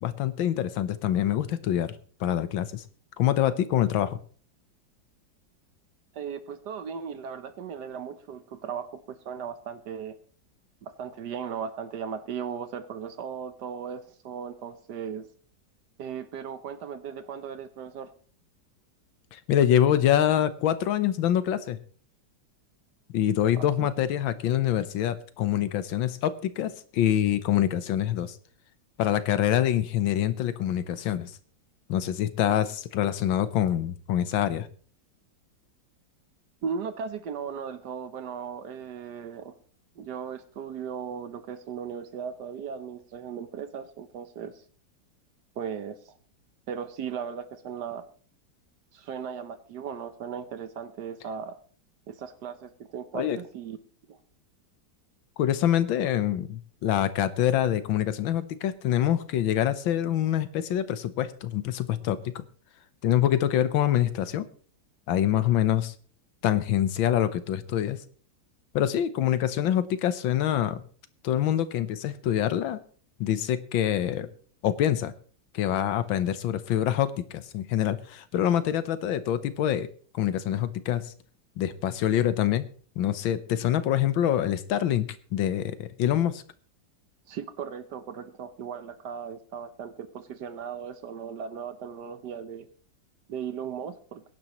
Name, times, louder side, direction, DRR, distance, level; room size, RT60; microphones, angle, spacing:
voice 1, 0.0-2.8 3.2-4.2 19.3-21.8 23.1-28.3 29.0-31.3 31.9-34.7 53.1-53.4 55.4-62.4 63.0-64.5 65.1-65.9 66.4-68.0 68.7-70.8 71.2-72.8 73.2-74.3 74.6-75.1 75.5-79.9 80.1-81.1 81.6-82.7 83.0-85.1 85.3-86.4, left 11 dB, 90° left, 13 dB, 1.6 m, -25 dB
voice 2, 6.1-10.1 10.8-15.3 16.0-18.1 23.5-23.9 36.6-39.6 40.0-44.6 45.6-46.1 46.7-48.0 48.9-51.6 52.1-53.8 54.1-54.2 87.3-92.7 93.3-94.2, right 7 dB, 65° right, 11 dB, 1.3 m, -37 dB
22.5 x 10.5 x 3.0 m, 0.43 s
omnidirectional pair, 2.1 m